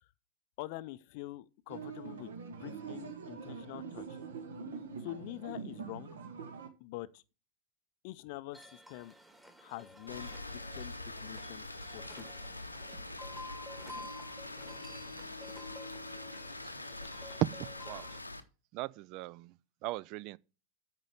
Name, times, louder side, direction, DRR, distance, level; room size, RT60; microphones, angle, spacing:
voice 1, 0.6-2.3 2.6-4.2 5.0-6.1 6.8-7.2 8.0-9.1 9.6-12.3, left 17 dB, 45° left, 0.5 m, -45 dB
sound 1, 1.7-6.7, right 6 dB, 65° right, 1.7 m, -44 dB
sound 2, 8.5-18.2, left 1 dB, 5° right, 1.6 m, -52 dB
Rain, 10.1-18.4, left 2 dB, 85° left, 0.8 m, -44 dB
voice 2, 17.5-18.1 18.7-19.5 19.8-20.4, right 18 dB, 40° right, 0.4 m, -41 dB
9.0 x 5.2 x 7.0 m
figure-of-eight pair, 90°, 0 cm